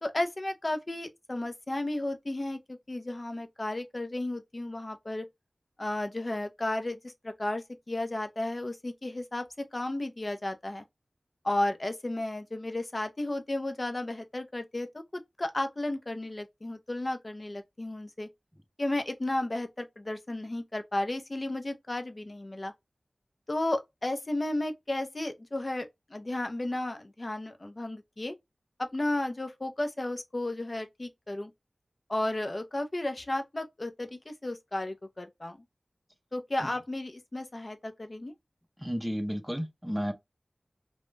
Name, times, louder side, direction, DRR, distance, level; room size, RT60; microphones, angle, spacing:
voice 1, 0.0-5.2 5.8-10.8 11.4-18.3 18.8-22.7 23.5-28.4 28.8-31.5 32.1-35.6 36.3-38.3, left 1 dB, 40° left, 0.5 m, -33 dB
voice 2, 38.8-40.1, equal, 10° right, 0.5 m, -32 dB
2.3 x 2.0 x 3.0 m
wide cardioid pair, 70°, 0 cm